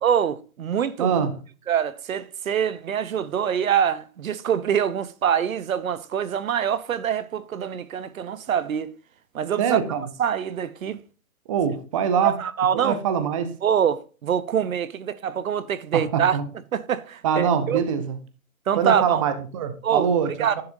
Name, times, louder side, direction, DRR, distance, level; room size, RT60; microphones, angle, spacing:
voice 1, 0.0-1.2 1.7-8.9 9.3-9.8 10.2-11.0 12.2-13.0 13.6-16.4 16.7-17.8 18.7-19.2 19.8-20.1 20.4-20.6, right 8 dB, 70° right, 0.8 m, -24 dB
voice 2, 1.0-1.4 9.6-10.1 11.5-12.4 12.7-13.5 15.9-16.4 17.2-18.2 18.8-20.3 20.6-20.7, right 7 dB, 25° right, 0.7 m, -23 dB
10.5 x 6.7 x 2.6 m
hypercardioid pair, 150°, 43 cm